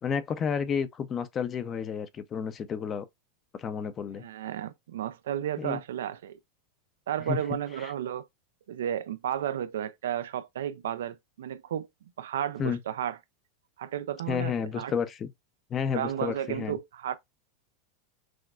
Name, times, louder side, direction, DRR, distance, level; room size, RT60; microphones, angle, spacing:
voice 1, 0.0-3.1 3.5-4.2 5.6-5.8 7.3-7.4 7.8-7.9 12.6-12.8 14.3-15.3 15.7-16.8, left 7 dB, 25° left, 0.5 m, -31 dB
voice 2, 4.2-6.4 7.1-8.3 8.7-11.9 12.2-13.2 13.8-14.9 15.9-17.2, right 10 dB, 90° right, 0.4 m, -33 dB
6.1 x 2.2 x 2.3 m
supercardioid pair, 130°, 0 cm